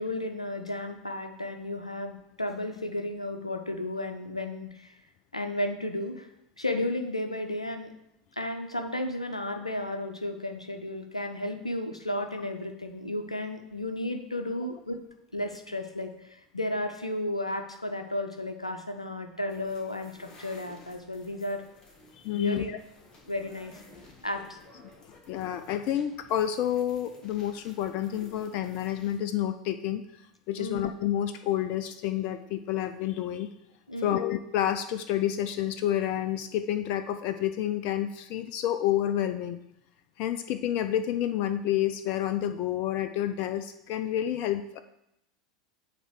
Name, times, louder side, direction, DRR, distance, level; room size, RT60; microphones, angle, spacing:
voice 1, 0.0-5.0 5.3-6.3 6.6-7.9 8.4-15.0 15.3-21.6 22.3-22.7 23.3-23.8 24.2-24.6 30.6-30.9 33.9-34.2, left 1 dB, 90° left, 6 dB, 0.6 m, -33 dB
sound 1, 19.5-29.2, left 2 dB, 25° left, 1.5 m, -54 dB
voice 2, 22.2-22.8 25.3-30.1 30.5-33.5 34.0-39.6 40.2-44.8, left 11 dB, 45° left, 10 dB, 0.4 m, -29 dB
7.9 x 2.9 x 6.0 m, 0.83 s
figure-of-eight pair, 80°, 3 cm